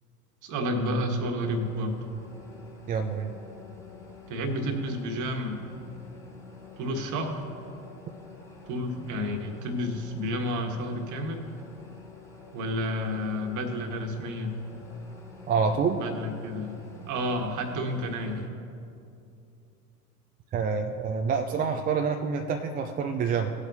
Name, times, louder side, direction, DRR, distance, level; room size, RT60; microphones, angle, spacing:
voice 1, 0.4-2.0 4.3-5.6 6.8-7.4 8.7-11.5 12.5-14.5 16.0-16.8 17.1-18.5, equal, 40° right, 5 dB, 1.6 m, -30 dB
sound 1, 1.4-18.5, left 3 dB, 5° left, 2.1 m, -48 dB
voice 2, 2.9-3.3 15.5-16.0 20.5-23.5, right 5 dB, 20° right, 4 dB, 0.5 m, -27 dB
18.5 x 8.1 x 2.8 m, 2.6 s
figure-of-eight pair, 80°, 46 cm